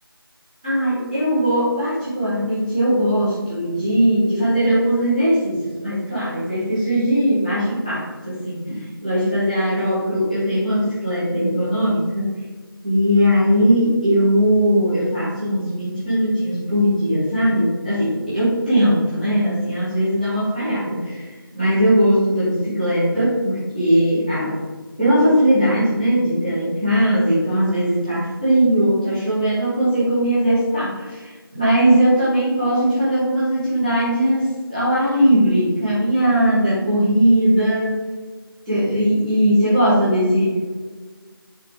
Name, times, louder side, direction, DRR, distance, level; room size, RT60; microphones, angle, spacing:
voice 1, 0.6-12.3 12.8-24.6 25.0-38.0 38.6-40.6, equal, 10° right, -17 dB, 1.5 m, -19 dB
11.0 x 3.9 x 3.6 m, 1.4 s
figure-of-eight pair, 170°, 13 cm